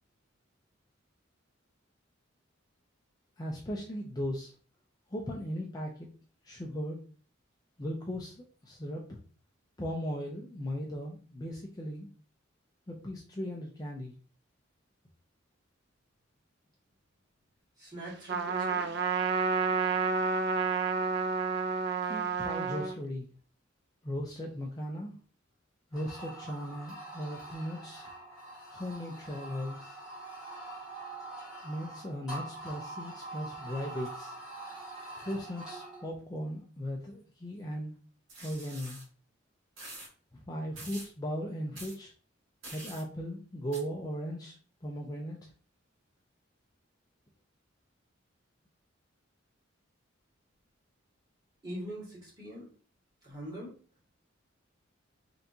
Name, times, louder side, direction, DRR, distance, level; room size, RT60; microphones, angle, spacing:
voice 1, 3.4-4.5 5.1-6.1 6.4-7.0 7.8-9.2 9.8-12.1 12.9-14.1 22.1-23.3 24.0-25.1 25.9-28.1 28.7-30.0 31.6-34.3 35.2-37.9 38.4-39.0 40.3-42.1 42.7-44.6 44.8-45.5, equal, 20° left, -1 dB, 0.5 m, -37 dB
voice 2, 17.8-19.0 51.6-52.7 53.2-53.7, right 1 dB, 20° right, -6 dB, 2.0 m, -42 dB
Trumpet, 18.3-23.0, right 5 dB, 55° right, 0.4 m, -30 dB
sound 1, 25.9-36.1, right 2 dB, 5° right, 1.6 m, -44 dB
sound 2, 38.3-39.0 39.8-40.1 40.8-41.1 41.7-42.0 42.6-43.0 43.7-43.8, right 2 dB, 75° right, 1.6 m, -46 dB
3.9 x 3.4 x 2.8 m, 0.39 s
head